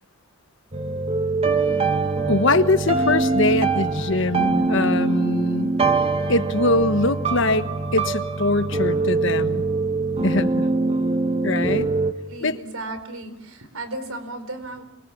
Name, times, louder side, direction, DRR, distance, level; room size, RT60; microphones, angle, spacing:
sound 1, 0.7-12.1, right 3 dB, 30° right, 1.8 m, -23 dB
voice 1, 2.3-5.8 6.3-9.6 10.2-10.7 11.4-11.9 12.4-12.6, left 2 dB, 60° left, 10 dB, 1.3 m, -22 dB
voice 2, 12.3-14.8, right 2 dB, 85° right, 11 dB, 4.6 m, -34 dB
28.5 x 26.0 x 7.2 m, 0.79 s
head